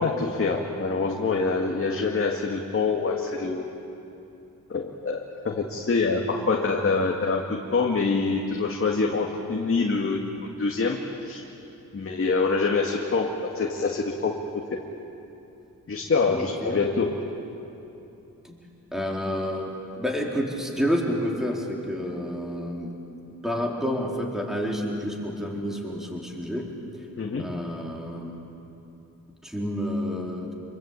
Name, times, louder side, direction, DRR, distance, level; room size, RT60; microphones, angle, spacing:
voice 1, 0.0-3.7 4.7-11.4 11.9-14.4 14.7-14.8 15.9-17.2 27.2-27.6, left 4 dB, 40° left, 0 dB, 2.0 m, -25 dB
voice 2, 16.3-16.9 18.4-18.6 18.9-19.7 20.0-22.9 23.4-26.6 27.4-28.4 29.4-30.5, equal, ahead, -1 dB, 4.1 m, -29 dB
26.0 x 22.0 x 8.8 m, 2.9 s
cardioid pair, 95°, 33 cm